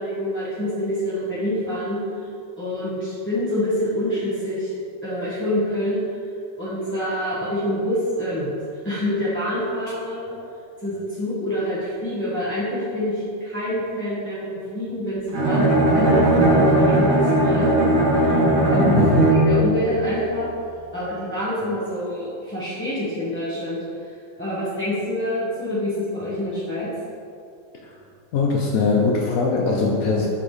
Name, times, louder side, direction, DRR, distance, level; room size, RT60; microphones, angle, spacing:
voice 1, 0.0-2.0 2.6-4.7 5.0-6.0 6.6-8.5 8.8-10.3 10.8-20.5 20.9-24.1 24.4-26.9, left 1 dB, 10° left, -13 dB, 0.9 m, -26 dB
Bowed string instrument, 15.3-19.7, right 1 dB, 60° right, 1.8 m, -17 dB
voice 2, 18.9-19.3 27.8-27.9 28.3-30.3, left 4 dB, 70° left, -1 dB, 0.8 m, -21 dB
5.9 x 4.8 x 3.9 m, 2.4 s
omnidirectional pair, 2.1 m